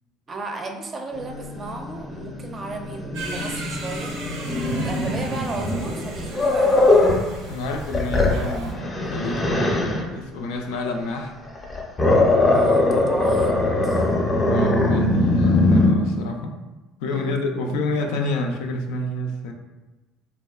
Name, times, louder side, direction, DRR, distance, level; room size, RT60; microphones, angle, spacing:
voice 1, 0.3-4.2 4.8-7.2 12.5-14.1 17.1-17.7, right 3 dB, 30° right, 3 dB, 0.4 m, -34 dB
Growling, 1.1-7.3 7.7-10.1 11.5-15.9, left 2 dB, 25° left, 0.5 m, -21 dB
sound 1, 3.1-8.7, right 2 dB, 90° right, 0.5 m, -36 dB
voice 2, 7.5-11.3 14.4-16.6 17.0-19.5, left 2 dB, 85° left, 3 dB, 0.3 m, -29 dB
3.4 x 2.1 x 2.3 m, 1.1 s
supercardioid pair, 95°, 0 cm